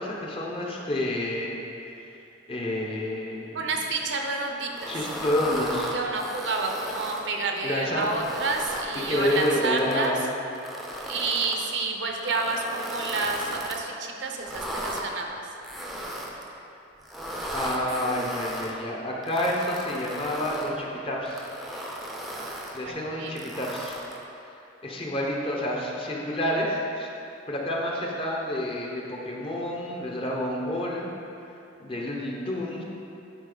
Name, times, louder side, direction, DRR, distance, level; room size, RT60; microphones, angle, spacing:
voice 1, 0.0-1.6 2.5-3.7 4.9-6.0 7.6-8.1 8.9-10.2 17.5-21.5 22.7-24.0 24.8-27.1 27.5-31.1 31.8-32.8, left 1 dB, 30° left, -2 dB, 0.9 m, -29 dB
voice 2, 3.5-4.9 5.9-10.1 11.1-15.4 22.8-22.9 23.2-23.3, right 3 dB, 65° right, 2 dB, 0.8 m, -29 dB
sound 1, 4.7-7.3 7.9-10.1 10.5-11.6 12.2-13.8 14.3-15.0 15.6-16.5 17.0-18.7 19.2-20.7 21.3-22.8 23.4-24.2, equal, ahead, 0.7 m, -36 dB
10.0 x 4.5 x 3.9 m, 2.7 s
head